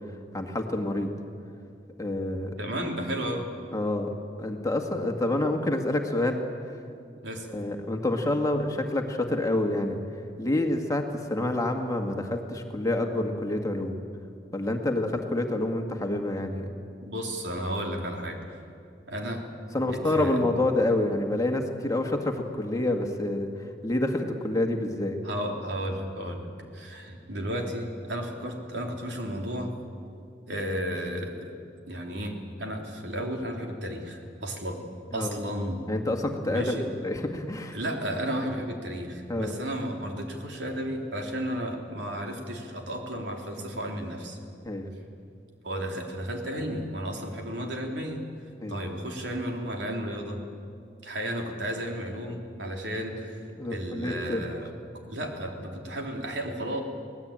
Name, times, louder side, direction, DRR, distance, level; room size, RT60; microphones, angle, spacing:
voice 1, 0.3-1.1 2.0-2.5 3.7-4.1 4.4-6.4 7.5-10.0 10.4-11.1 11.3-14.0 14.5-16.7 19.7-23.5 23.8-25.2 35.1-35.4 35.9-37.8 39.3-39.5 44.6-44.9 48.6-48.8 53.6-54.4, left 1 dB, 20° left, 3 dB, 1.8 m, -27 dB
voice 2, 2.6-3.5 7.2-7.5 17.0-18.6 19.1-19.4 19.8-20.4 24.2-24.3 25.2-29.7 30.5-31.5 31.9-34.8 35.1-35.8 36.5-36.9 37.7-44.4 45.6-48.2 48.7-50.4 51.0-53.4 53.7-54.7 55.1-56.8, equal, 85° right, 1 dB, 3.4 m, -33 dB
24.5 x 18.0 x 8.9 m, 2.4 s
head